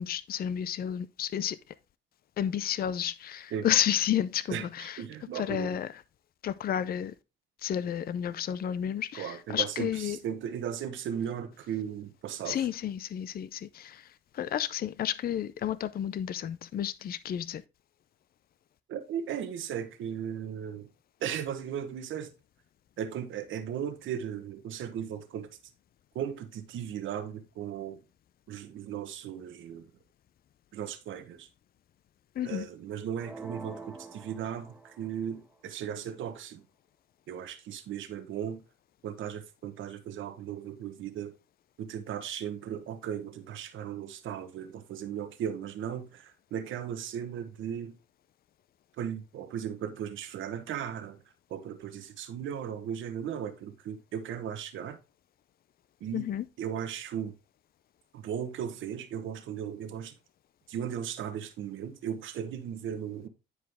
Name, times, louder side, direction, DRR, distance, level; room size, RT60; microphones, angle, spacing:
voice 1, 0.0-1.7 2.4-5.0 5.3-6.0 6.4-7.1 7.6-10.2 12.5-17.6 32.3-32.7 56.1-56.5, left 10 dB, 50° left, 0.5 m, -31 dB
voice 2, 5.0-5.8 9.1-9.9 10.2-12.6 18.9-20.9 21.2-22.3 23.0-25.5 26.1-28.0 28.5-29.9 30.7-31.5 32.4-36.6 37.3-38.6 39.0-41.3 41.8-47.9 49.0-51.2 51.5-55.0 56.0-56.2 56.6-57.3 58.1-60.1 60.7-63.3, right 9 dB, 80° right, 1.2 m, -36 dB
sound 1, 33.2-35.3, right 3 dB, 10° right, 1.1 m, -45 dB
9.8 x 4.8 x 3.5 m
cardioid pair, 90°, 20 cm